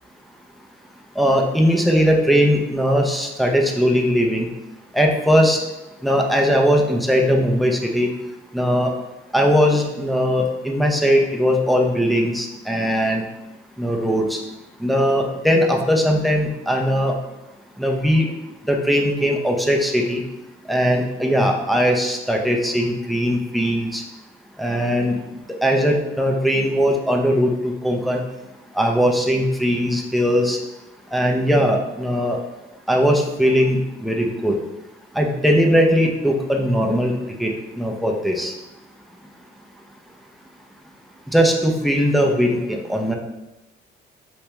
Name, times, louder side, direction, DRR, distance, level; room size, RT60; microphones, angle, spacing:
voice 1, 1.2-4.5 4.9-5.6 6.0-8.1 8.5-8.9 9.3-13.2 13.8-14.4 14.8-17.1 17.8-18.3 18.7-20.2 20.7-24.0 24.6-25.2 25.6-28.2 28.7-30.6 31.1-32.4 32.9-34.6 35.2-37.1 37.4-37.5 37.8-38.5 41.3-43.2, equal, ahead, 1 dB, 0.5 m, -19 dB
3.4 x 3.2 x 3.0 m, 0.98 s
cardioid pair, 90°, 20 cm